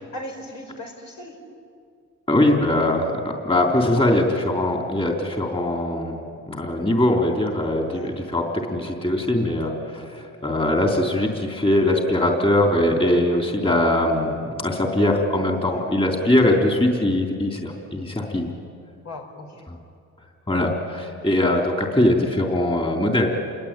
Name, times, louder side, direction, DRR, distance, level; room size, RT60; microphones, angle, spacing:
voice 1, 0.0-1.4 4.0-4.2 7.9-8.1 15.6-15.8 19.0-19.6, left 1 dB, 65° left, 2 dB, 5.1 m, -38 dB
voice 2, 2.3-6.2 6.5-8.4 8.7-18.5 20.5-23.3, left 1 dB, 20° left, 1 dB, 3.8 m, -21 dB
28.5 x 20.5 x 9.1 m, 2.4 s
cardioid pair, 90°, 30 cm